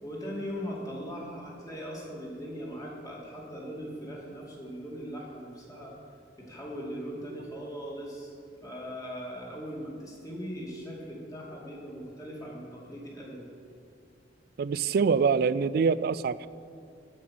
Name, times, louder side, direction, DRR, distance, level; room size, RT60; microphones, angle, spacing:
voice 1, 0.0-5.9 6.4-8.3 8.6-13.5, equal, 20° left, -4 dB, 2.6 m, -39 dB
voice 2, 14.6-16.5, right 5 dB, 60° right, 16 dB, 0.3 m, -25 dB
16.0 x 5.5 x 7.7 m, 2.5 s
head